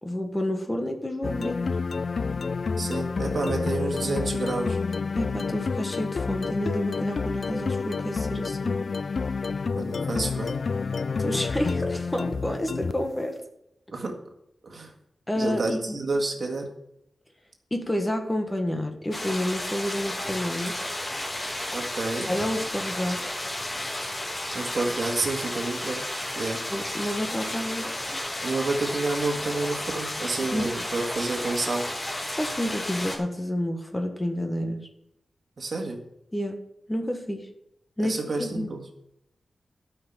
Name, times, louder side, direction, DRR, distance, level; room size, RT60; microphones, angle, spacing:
voice 1, 0.0-1.8 5.1-8.8 11.2-13.4 15.3-16.0 17.7-20.8 22.3-23.2 26.7-27.9 30.4-30.7 32.3-34.9 36.3-36.6 36.9-37.5 38.0-38.7, left 1 dB, 15° left, 4 dB, 1.4 m, -29 dB
sound 1, 1.2-13.2, left 4 dB, 50° left, 0.3 m, -29 dB
voice 2, 2.8-4.8 9.8-10.6 13.9-14.2 14.6-14.9 15.3-16.7 21.7-22.3 24.5-26.0 26.4-26.6 28.4-31.9 35.6-36.0 38.0-38.8, right 3 dB, 50° right, 2 dB, 1.9 m, -29 dB
sound 2, 19.1-33.2, left 1 dB, 30° left, 2.6 m, -32 dB
12.5 x 5.9 x 7.3 m, 0.80 s
wide cardioid pair, 125°, 0 cm